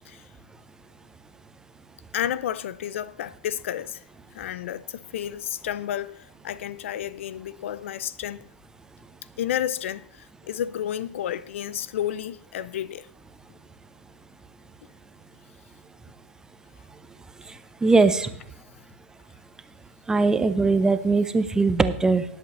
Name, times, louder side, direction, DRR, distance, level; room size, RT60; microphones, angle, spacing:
voice 1, 2.1-4.0 4.3-8.5 9.4-13.1, left 11 dB, 60° left, 0.5 m, -31 dB
voice 2, 17.5-18.3 20.1-22.3, right 3 dB, 10° right, 0.6 m, -21 dB
19.5 x 8.0 x 3.1 m
hypercardioid pair, 125°, 8 cm